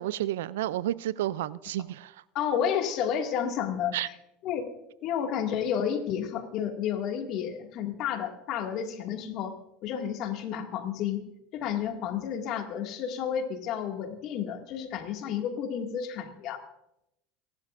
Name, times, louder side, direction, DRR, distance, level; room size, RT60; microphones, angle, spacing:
voice 1, 0.0-2.2 3.9-4.1, right 13 dB, 85° right, 19 dB, 0.4 m, -31 dB
voice 2, 2.3-4.0 4.4-4.7 5.0-9.6 9.8-11.2 11.5-16.6, left 8 dB, 55° left, 4 dB, 2.1 m, -31 dB
30.0 x 11.5 x 2.6 m, 0.86 s
supercardioid pair, 105°, 0 cm